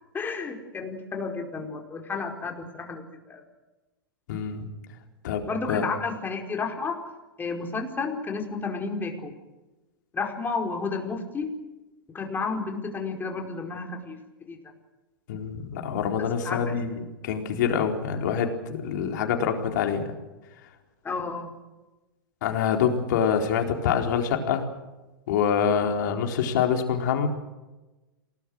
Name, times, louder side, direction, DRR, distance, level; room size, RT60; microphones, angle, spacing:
voice 1, 0.1-3.4 5.4-7.0 7.4-9.3 10.1-11.5 12.1-14.6 16.2-16.8 21.0-21.5, left 4 dB, 15° left, 2 dB, 4.9 m, -32 dB
voice 2, 4.3-4.7 5.2-5.8 15.3-20.1 22.4-24.6 25.3-27.3, left 7 dB, 60° left, 4 dB, 4.4 m, -26 dB
28.5 x 19.5 x 6.5 m, 1.1 s
hypercardioid pair, 105°, 11 cm